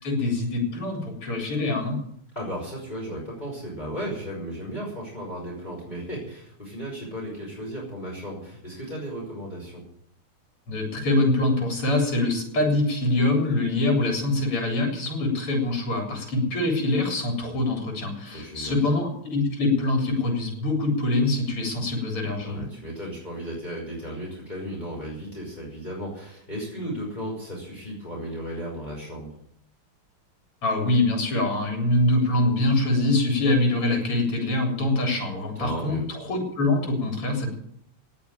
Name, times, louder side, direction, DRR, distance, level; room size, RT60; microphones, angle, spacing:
voice 1, 0.0-2.0 10.7-22.6 30.6-37.5, left 2 dB, 85° left, 2 dB, 4.7 m, -24 dB
voice 2, 2.4-9.8 18.3-18.8 22.3-29.3 35.6-36.0, equal, 20° left, -3 dB, 5.4 m, -35 dB
19.0 x 7.1 x 9.1 m, 0.69 s
omnidirectional pair, 2.4 m